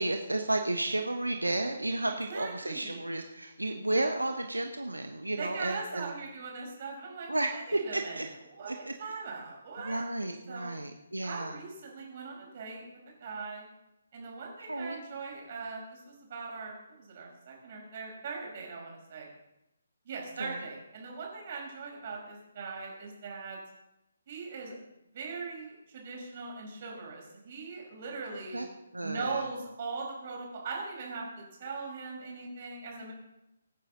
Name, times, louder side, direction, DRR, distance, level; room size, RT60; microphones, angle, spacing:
voice 1, 0.0-6.1 7.3-8.3 8.6-8.9 9.8-11.6 14.6-15.0 20.4-20.6 28.5-28.7 28.9-29.5, right 2 dB, 80° right, 5 dB, 1.2 m, -32 dB
voice 2, 2.1-3.1 5.3-8.2 8.6-10.0 10.5-10.8 11.2-12.8 13.2-13.7 14.1-19.3 20.1-23.6 24.3-24.8 25.1-28.6 29.0-33.1, right 4 dB, 40° right, -1 dB, 5.3 m, -40 dB
24.5 x 9.5 x 3.9 m, 0.90 s
figure-of-eight pair, 140°, 0 cm